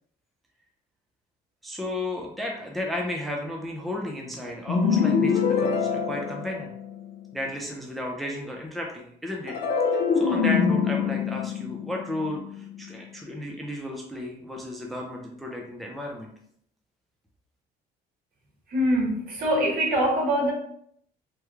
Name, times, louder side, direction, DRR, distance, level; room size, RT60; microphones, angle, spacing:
voice 1, 1.6-6.7 7.3-9.6 9.9-16.3, left 1 dB, ahead, 0 dB, 0.5 m, -33 dB
sound 1, 4.7-7.1 9.5-12.8, left 6 dB, 75° left, 0.6 m, -24 dB
voice 2, 18.7-20.5, equal, 60° right, -2 dB, 1.3 m, -23 dB
3.4 x 2.2 x 3.1 m, 0.68 s
cardioid pair, 110°, 17 cm